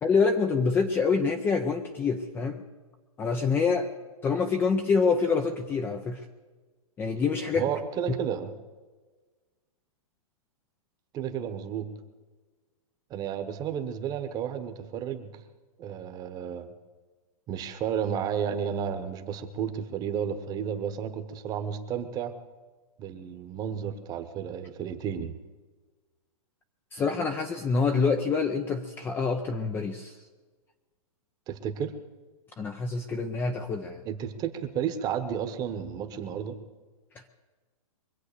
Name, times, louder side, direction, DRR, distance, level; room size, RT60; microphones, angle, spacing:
voice 1, 0.0-2.6 3.2-3.9 4.2-6.2 7.0-7.7 26.9-30.2 32.6-34.0, left 5 dB, 10° left, 5 dB, 0.5 m, -26 dB
voice 2, 7.5-8.5 11.1-11.9 13.1-15.3 15.8-16.7 17.5-22.3 23.0-25.4 31.5-31.9 34.0-36.6, right 8 dB, 20° right, 9 dB, 1.1 m, -32 dB
23.5 x 8.1 x 6.7 m, 1.4 s
hypercardioid pair, 155°, 19 cm